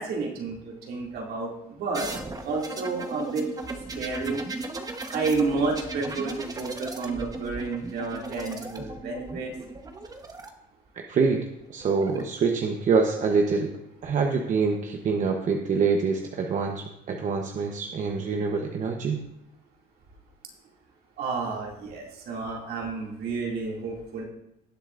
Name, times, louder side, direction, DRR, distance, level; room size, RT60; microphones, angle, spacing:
voice 1, 0.0-2.1 2.4-3.5 3.9-4.4 5.1-9.5 21.2-24.2, right 4 dB, 65° right, -1 dB, 2.5 m, -30 dB
sound 1, 1.9-10.5 11.6-12.2, right 3 dB, 20° right, 1.1 m, -36 dB
voice 2, 10.9-13.7 14.0-19.2, right 5 dB, 50° right, 3 dB, 1.0 m, -25 dB
18.0 x 7.6 x 2.5 m, 0.85 s
cardioid pair, 110°, 17 cm